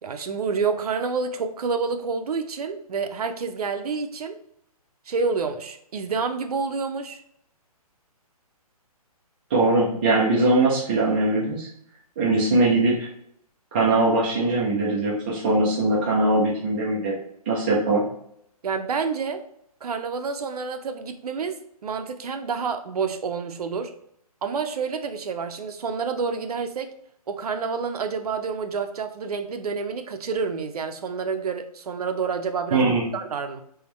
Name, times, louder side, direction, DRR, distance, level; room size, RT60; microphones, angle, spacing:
voice 1, 0.0-4.4 5.1-7.2 18.6-19.4 19.8-23.9 24.4-26.9 27.3-33.6, right 5 dB, 75° right, 7 dB, 0.6 m, -28 dB
voice 2, 9.5-11.7 12.2-13.1 13.7-17.1 17.5-18.0 32.7-33.0, right 2 dB, 15° right, -7 dB, 0.5 m, -21 dB
3.5 x 3.1 x 3.1 m, 0.70 s
hypercardioid pair, 170°, 20 cm